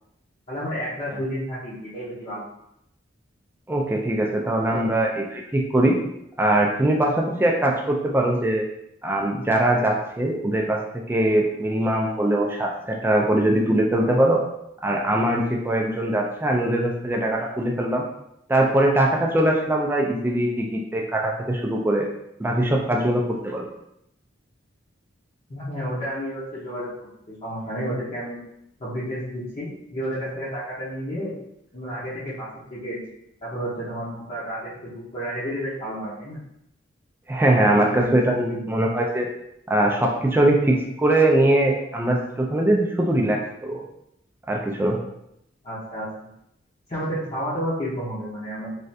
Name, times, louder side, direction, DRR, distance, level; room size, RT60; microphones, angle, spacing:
voice 1, 0.5-2.4 4.7-4.9 25.5-26.9 27.3-28.4 28.8-31.3 31.7-33.0 33.4-36.4 37.8-38.8 45.6-46.3 46.9-48.7, equal, 35° left, -8 dB, 0.7 m, -31 dB
voice 2, 3.7-6.0 6.4-8.6 9.0-10.8 11.1-14.4 14.8-18.0 18.5-22.1 22.4-23.7 37.3-39.3 39.7-43.8 44.5-45.0, right 1 dB, 10° right, 0 dB, 0.3 m, -21 dB
3.2 x 2.4 x 2.7 m, 0.80 s
head